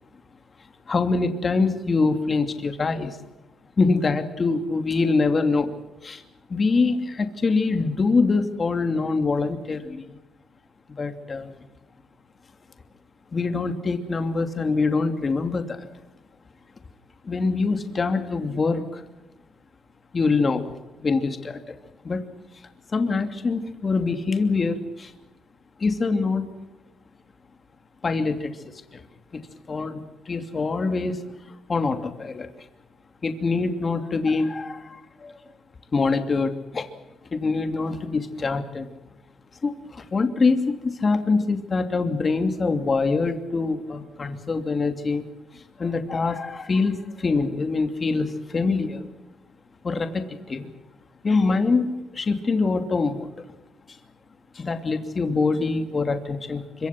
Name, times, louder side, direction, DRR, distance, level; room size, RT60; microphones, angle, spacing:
voice 1, 0.9-3.2 3.8-5.8 6.0-6.2 6.5-10.2 11.0-11.6 13.3-15.9 17.2-19.0 20.1-20.7 21.0-21.8 22.0-22.2 22.9-25.1 25.8-26.5 28.0-29.0 29.3-29.4 29.7-32.5 33.2-35.4 35.9-36.9 37.3-38.9 39.6-45.3 45.5-49.1 49.8-50.7 51.2-51.9 52.1-53.4 53.9-54.0 54.5-56.9, left 4 dB, 35° left, 7 dB, 2.8 m, -24 dB
25.5 x 24.0 x 6.1 m, 1.1 s
cardioid pair, 90°, 0 cm